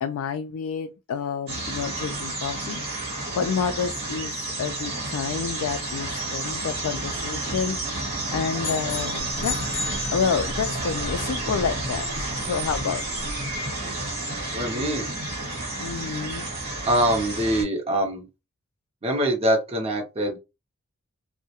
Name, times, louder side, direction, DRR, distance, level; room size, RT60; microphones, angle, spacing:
voice 1, 0.0-2.8 3.3-7.8 8.3-9.6 10.1-12.1 12.4-13.0 15.8-16.5, left 6 dB, 75° left, 0.3 m, -29 dB
sound 1, 1.5-17.6, right 2 dB, 50° right, 1.0 m, -31 dB
sound 2, 8.6-10.8, left 5 dB, 50° left, 0.8 m, -34 dB
sound 3, 9.2-13.6, equal, 80° right, 0.8 m, -38 dB
voice 2, 14.5-15.1 16.9-18.3 19.0-20.4, right 1 dB, 30° right, 0.5 m, -24 dB
2.3 x 2.0 x 2.7 m
head